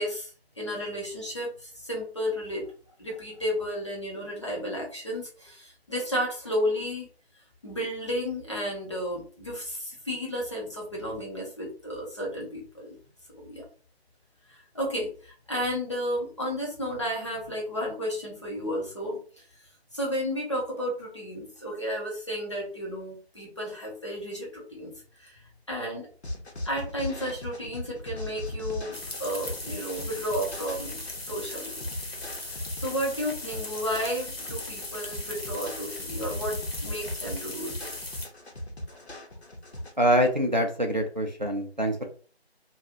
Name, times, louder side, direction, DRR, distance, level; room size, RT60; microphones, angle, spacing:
voice 1, 0.0-2.7 3.0-7.1 7.6-13.0 13.3-13.7 14.5-19.6 19.9-24.9 25.2-26.1 26.6-31.0 31.3-31.8 32.4-37.9 38.9-39.0, equal, 25° left, -4 dB, 0.8 m, -33 dB
sound 1, 26.2-39.9, left 1 dB, 85° left, 0.9 m, -39 dB
sound 2, 28.9-38.3, left 2 dB, 65° left, 1.0 m, -38 dB
voice 2, 40.0-42.1, right 1 dB, 45° right, 3 dB, 0.4 m, -25 dB
2.3 x 2.3 x 2.9 m, 0.39 s
figure-of-eight pair, 160°, 32 cm